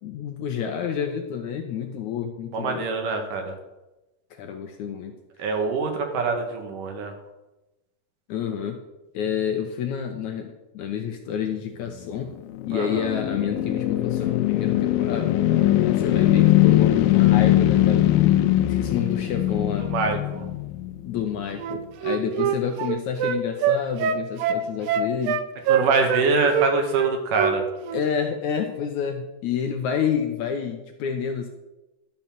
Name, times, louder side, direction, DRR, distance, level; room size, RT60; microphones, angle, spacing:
voice 1, 0.0-2.9 4.3-5.2 8.3-8.8 9.1-12.3 12.6-15.3 16.0-19.9 21.0-25.4 27.9-31.5, left 8 dB, 75° left, 4 dB, 1.9 m, -29 dB
voice 2, 2.5-3.5 5.4-7.1 12.7-13.1 19.5-20.5 25.7-27.7, right 4 dB, 70° right, 4 dB, 2.8 m, -25 dB
sound 1, 12.1-21.4, left 14 dB, 90° left, 2.5 m, -21 dB
Wind instrument woodwind instrument, 21.6-26.3 26.5-27.6 27.8-28.0, right 8 dB, 90° right, 2.4 m, -24 dB
12.0 x 5.6 x 7.3 m, 1.0 s
omnidirectional pair, 4.1 m